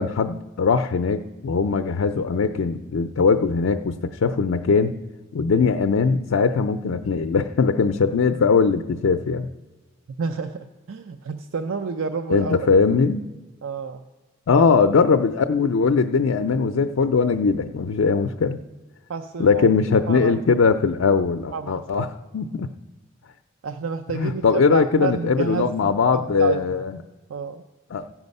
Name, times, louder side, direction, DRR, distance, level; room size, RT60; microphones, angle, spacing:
voice 1, 0.0-4.9 5.3-9.5 12.3-13.2 14.5-18.6 19.4-22.1 22.3-22.7 24.1-26.9 27.9-28.1, left 5 dB, 80° left, 6 dB, 0.4 m, -20 dB
voice 2, 10.2-12.7 13.6-14.0 19.1-19.7 20.1-20.4 20.6-20.7 21.5-21.8 23.6-26.8 27.3-27.6, right 5 dB, 80° right, 8 dB, 0.5 m, -30 dB
16.0 x 6.1 x 5.3 m, 1.2 s
head